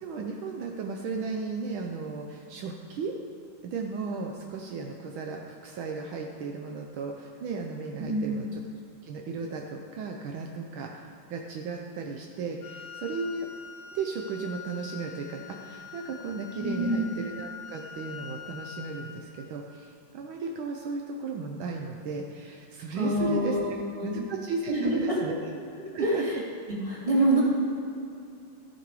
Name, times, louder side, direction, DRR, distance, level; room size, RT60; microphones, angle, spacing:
voice 1, 0.0-3.1 3.6-8.6 9.0-13.5 13.9-23.6 24.0-25.4 25.9-26.3, right 4 dB, 75° right, 1 dB, 1.5 m, -35 dB
voice 2, 8.0-8.4 16.6-17.0 22.9-24.2 24.7-25.2 25.9-26.3 26.7-27.4, right 1 dB, 15° right, -7 dB, 2.8 m, -26 dB
Wind instrument woodwind instrument, 12.6-19.3, left 7 dB, 55° left, 1.2 m, -44 dB
14.5 x 6.8 x 4.7 m, 2.6 s
omnidirectional pair, 2.3 m